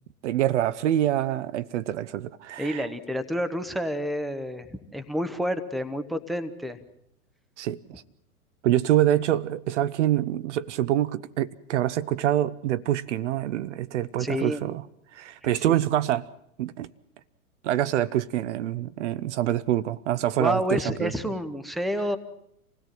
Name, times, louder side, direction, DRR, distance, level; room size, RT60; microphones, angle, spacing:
voice 1, 0.2-2.9 7.6-8.0 8.6-14.8 15.1-16.3 16.6-16.9 17.6-21.1, right 12 dB, 55° right, 0.8 m, -26 dB
voice 2, 2.6-6.8 14.2-14.6 15.4-15.6 20.4-22.2, equal, ahead, 0.9 m, -29 dB
26.5 x 17.0 x 7.6 m
hypercardioid pair, 105°, 44 cm